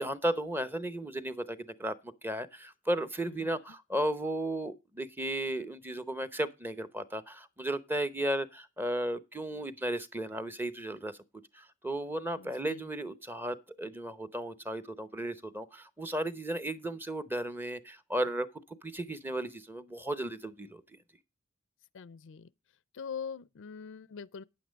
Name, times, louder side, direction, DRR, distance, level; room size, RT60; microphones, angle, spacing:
voice 1, 0.0-11.2 11.5-20.8, right 1 dB, 10° right, 0.8 m, -35 dB
voice 2, 12.4-12.9 21.9-22.5 22.9-24.4, left 6 dB, 60° left, 0.5 m, -43 dB
9.5 x 8.6 x 5.1 m
head